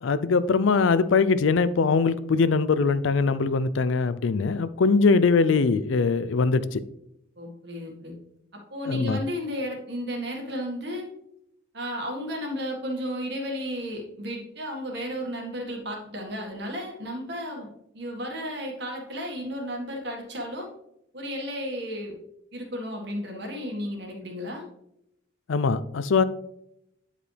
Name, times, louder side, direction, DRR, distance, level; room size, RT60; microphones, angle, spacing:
voice 1, 0.0-6.8 8.9-9.2 25.5-26.2, left 4 dB, 70° left, 0.4 m, -22 dB
voice 2, 7.4-8.1 8.5-11.1 11.7-17.7 17.9-20.7 21.1-22.2 22.5-24.7, equal, 55° right, 1.7 m, -33 dB
9.9 x 4.9 x 3.3 m
head